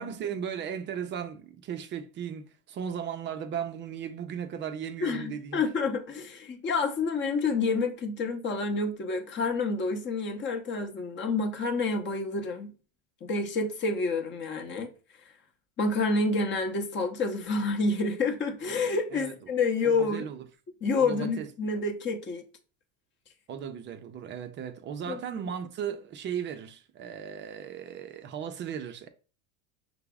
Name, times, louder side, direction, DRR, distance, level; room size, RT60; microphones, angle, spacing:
voice 1, 0.0-5.6 19.1-19.5 19.8-20.4 21.0-21.5 23.5-29.1, right 8 dB, 30° right, 0.4 m, -36 dB
voice 2, 5.0-12.7 13.2-14.9 15.8-20.3 20.8-22.4 25.1-25.4, left 3 dB, 30° left, 0.7 m, -28 dB
5.6 x 2.0 x 3.4 m
supercardioid pair, 120°, 41 cm